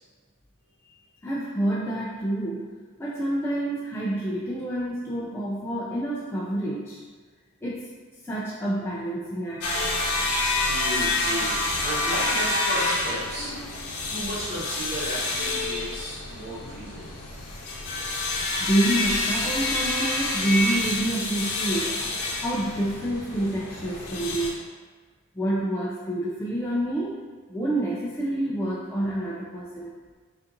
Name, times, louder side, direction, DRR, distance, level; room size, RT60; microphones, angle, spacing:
voice 1, 1.2-2.7 3.0-7.0 7.6-7.9 8.3-9.6 18.6-24.6 25.3-27.2 27.5-29.9, right 1 dB, 10° left, -7 dB, 0.3 m, -28 dB
sound 1, 9.6-24.5, left 2 dB, 90° left, 0.7 m, -28 dB
voice 2, 10.6-17.1, equal, 45° right, -11 dB, 1.1 m, -34 dB
5.2 x 2.5 x 2.6 m, 1.5 s
head